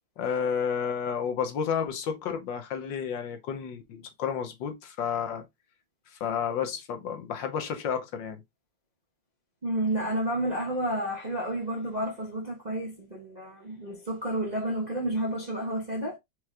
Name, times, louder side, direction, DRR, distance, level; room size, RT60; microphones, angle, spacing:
voice 1, 0.2-5.4 6.2-8.4, left 7 dB, 70° left, 1.4 m, -31 dB
voice 2, 9.6-16.2, right 1 dB, 30° right, 0.8 m, -30 dB
4.8 x 4.5 x 2.3 m
omnidirectional pair, 2.2 m